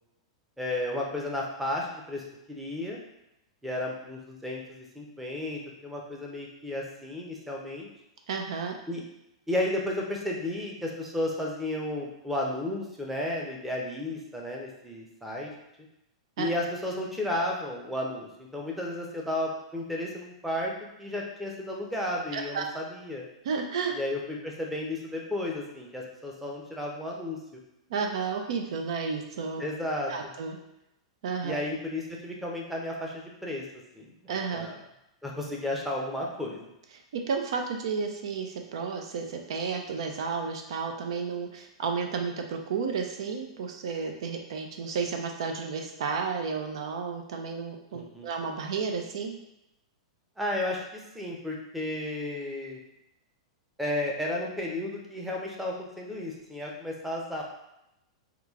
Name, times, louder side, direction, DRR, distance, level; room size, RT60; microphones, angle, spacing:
voice 1, 0.6-3.0 3.6-7.9 8.9-9.0 9.5-15.5 16.4-20.7 21.0-23.3 23.9-27.6 29.6-30.1 31.4-33.6 33.9-34.7 35.2-36.7 47.9-48.3 50.4-52.8 53.8-57.4, left 1 dB, 5° right, -2 dB, 0.7 m, -33 dB
voice 2, 8.3-8.7 16.4-16.5 22.3-22.6 23.4-23.9 27.9-29.6 30.1-30.6 31.2-31.6 34.3-34.7 37.1-49.4, right 5 dB, 70° right, 3 dB, 0.4 m, -32 dB
2.9 x 2.4 x 3.5 m, 0.87 s
hypercardioid pair, 110°, 3 cm